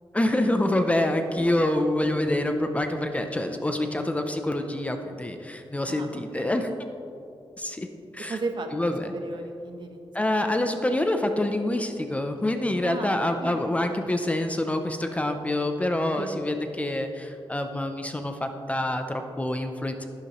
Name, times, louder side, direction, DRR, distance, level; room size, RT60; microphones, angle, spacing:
voice 1, 0.1-6.7 7.6-8.4 8.7-9.1 10.1-20.1, left 1 dB, 15° left, 6 dB, 0.5 m, -26 dB
voice 2, 8.3-10.0 12.8-13.7 16.1-16.4, right 3 dB, 55° right, 5 dB, 0.9 m, -35 dB
11.5 x 11.0 x 3.0 m, 2.7 s
wide cardioid pair, 165°, 9 cm